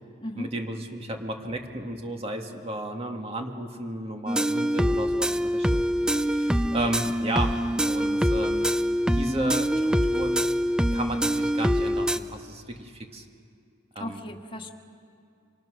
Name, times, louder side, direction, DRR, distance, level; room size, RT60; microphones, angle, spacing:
voice 1, 0.3-5.8 6.1-8.7 9.1-10.5 10.9-13.2 14.0-14.2, right 1 dB, 30° right, 3 dB, 2.2 m, -34 dB
sound 1, 4.3-12.2, equal, 5° right, 0.5 m, -24 dB
voice 2, 14.0-14.7, left 1 dB, 25° left, 1 dB, 1.9 m, -35 dB
27.0 x 25.5 x 6.6 m, 2.4 s
head